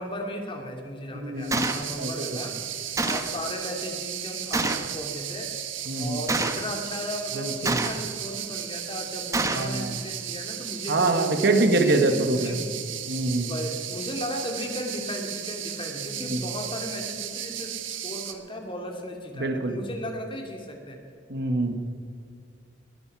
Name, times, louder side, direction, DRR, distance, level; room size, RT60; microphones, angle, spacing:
voice 1, 0.0-5.6 6.0-12.6 13.5-21.0, left 1 dB, 25° left, 3 dB, 2.5 m, -36 dB
voice 2, 1.1-1.7 2.0-2.3 5.9-6.2 7.3-7.8 9.5-10.0 10.9-12.6 13.1-13.5 16.3-16.4 19.3-19.8 21.3-21.7, right 2 dB, 60° right, 6 dB, 1.7 m, -25 dB
sound 1, 1.4-18.3, right 10 dB, 80° right, 1.4 m, -35 dB
Gunshot gunfire, 1.5-1.8 3.0-3.4 4.5-4.9 6.3-6.7 7.6-8.1 9.3-9.7, right 2 dB, 15° right, 1.1 m, -27 dB
21.5 x 13.5 x 4.8 m, 2.3 s
head